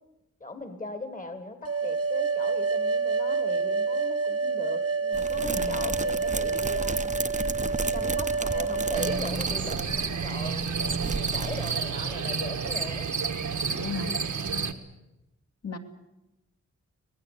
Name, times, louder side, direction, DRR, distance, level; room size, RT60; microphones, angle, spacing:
voice 1, 0.4-7.1 7.9-13.1, left 2 dB, 25° left, 9 dB, 1.8 m, -39 dB
sound 1, 1.7-9.2, right 4 dB, 55° right, 1.1 m, -28 dB
sound 2, 5.1-12.2 12.4-12.5 12.8-13.0, right 3 dB, 25° right, 0.9 m, -34 dB
voice 2, 5.5-5.9 13.7-14.2 15.6-15.8, left 4 dB, 60° left, 4 dB, 2.3 m, -35 dB
sound 3, 8.9-14.7, right 5 dB, 80° right, 1.6 m, -30 dB
25.0 x 19.0 x 8.3 m, 0.94 s
wide cardioid pair, 140°, 29 cm